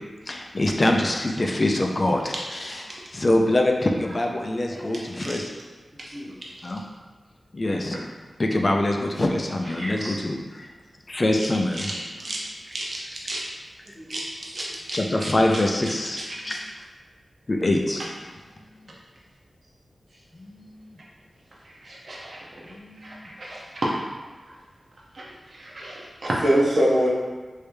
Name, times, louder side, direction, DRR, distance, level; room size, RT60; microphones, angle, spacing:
voice 1, 0.3-2.3 3.1-5.5 6.6-6.8 7.5-8.0 8.4-10.7 11.1-11.9 14.9-16.6 17.5-18.0 18.8-18.9 20.3-21.0 22.6-23.3, left 1 dB, 35° left, 2 dB, 0.4 m, -24 dB
voice 2, 4.9-5.4 6.0-6.1 6.4-6.9 7.9-8.0 9.6-10.0 11.4-13.4 14.1-14.2 14.5-16.6 18.0-18.1 21.5-23.9 24.4-24.6 25.1-26.4, right 1 dB, 55° right, -4 dB, 0.7 m, -35 dB
voice 3, 9.8-10.1 13.9-14.0 26.4-27.1, right 1 dB, 80° right, -9 dB, 1.4 m, -22 dB
3.3 x 2.7 x 3.3 m, 1.3 s
wide cardioid pair, 85°, 0 cm